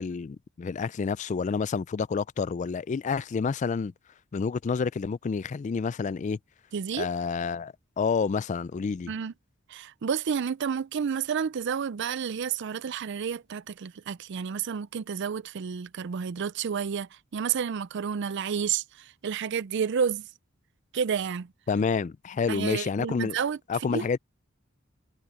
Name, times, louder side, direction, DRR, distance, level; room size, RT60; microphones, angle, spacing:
voice 1, 0.0-3.9 4.3-6.4 7.0-9.1 21.7-23.4 23.7-24.2, left 5 dB, 35° left, 0.3 m, -29 dB
voice 2, 6.7-7.1 9.1-9.3 9.7-20.3 20.9-21.5 22.5-23.6 23.9-24.1, right 7 dB, 55° right, 0.4 m, -30 dB
head